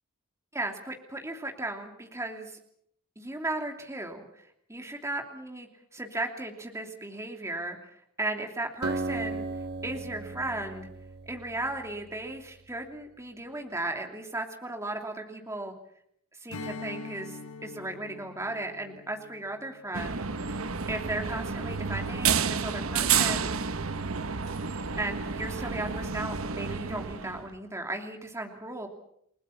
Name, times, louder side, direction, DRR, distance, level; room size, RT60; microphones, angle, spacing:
voice 1, 0.5-2.6 3.2-4.3 4.7-7.9 8.2-9.4 9.8-10.9 11.3-15.7 16.4-20.2 20.9-23.6 25.0-28.9, right 2 dB, 15° right, 3 dB, 2.8 m, -36 dB
Acoustic guitar, 8.8-12.4, right 2 dB, 50° right, 0.9 m, -36 dB
Strum, 16.5-21.3, left 3 dB, 75° left, 1.6 m, -44 dB
sound 1, 19.9-27.5, right 6 dB, 70° right, 1.1 m, -30 dB
29.5 x 19.0 x 7.1 m, 0.71 s
head